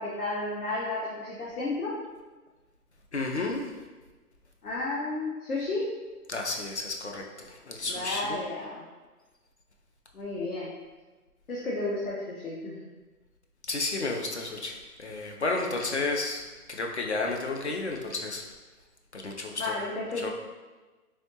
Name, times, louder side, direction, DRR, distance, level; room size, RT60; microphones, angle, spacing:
voice 1, 0.0-2.0 4.6-5.9 7.8-8.9 10.1-10.7 11.5-12.8 19.6-20.3, left 2 dB, 65° left, -5 dB, 0.9 m, -32 dB
voice 2, 3.1-3.6 6.3-8.4 13.7-16.4 16.7-18.4 19.1-19.7 20.2-20.3, left 3 dB, 50° left, 1 dB, 0.5 m, -32 dB
3.6 x 3.4 x 2.7 m, 1.3 s
hypercardioid pair, 170°, 47 cm